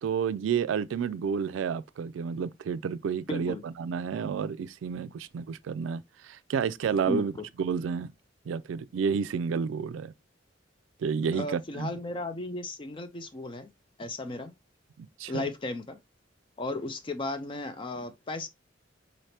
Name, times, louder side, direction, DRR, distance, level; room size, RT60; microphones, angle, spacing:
voice 1, 0.0-7.3 7.6-8.1 8.5-10.1 11.0-11.9 15.0-15.4, right 6 dB, 80° right, 0.3 m, -30 dB
voice 2, 3.3-3.6 7.1-7.2 11.3-13.7 14.0-14.5 15.3-16.0 16.6-18.5, left 2 dB, 25° left, 0.4 m, -35 dB
4.0 x 3.3 x 2.7 m
head